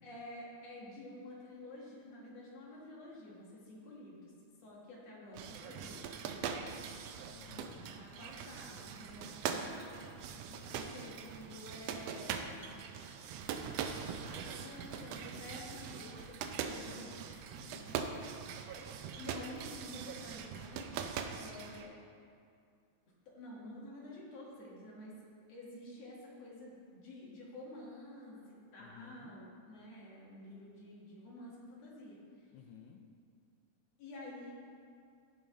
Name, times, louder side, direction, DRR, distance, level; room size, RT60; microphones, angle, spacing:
voice 1, 0.0-4.3 4.6-7.1 7.8-10.1 10.7-12.8 13.9-17.4 19.2-20.9 21.4-22.0 23.3-25.1 25.5-32.5 34.0-34.5, left 1 dB, 60° left, -5 dB, 2.5 m, -50 dB
sound 1, 5.3-21.9, right 7 dB, 80° right, 1.5 m, -42 dB
voice 2, 7.3-7.9 10.3-10.8 17.6-18.0 28.8-29.4 32.5-33.0, left 7 dB, 80° left, 5 dB, 1.9 m, -55 dB
15.5 x 5.2 x 3.7 m, 2.4 s
omnidirectional pair, 3.5 m